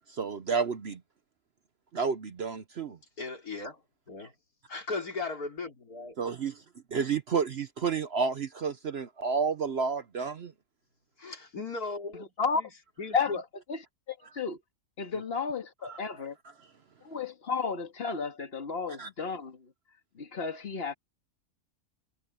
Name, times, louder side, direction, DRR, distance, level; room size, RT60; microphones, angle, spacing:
voice 1, 0.1-1.0 1.9-3.0 6.2-6.6 6.9-10.5 15.9-16.0 19.0-19.1, right 5 dB, 50° right, 0.9 m, -30 dB
voice 2, 3.2-3.8 4.1-4.3 4.7-6.2 11.2-12.7 13.0-13.4 15.1-15.2, left 3 dB, 75° left, 4.2 m, -37 dB
voice 3, 12.1-12.7 13.1-13.4 13.7-13.8 14.1-14.6 15.0-16.4 17.0-19.7 20.2-20.9, left 5 dB, 40° left, 2.1 m, -32 dB
omnidirectional pair, 1.6 m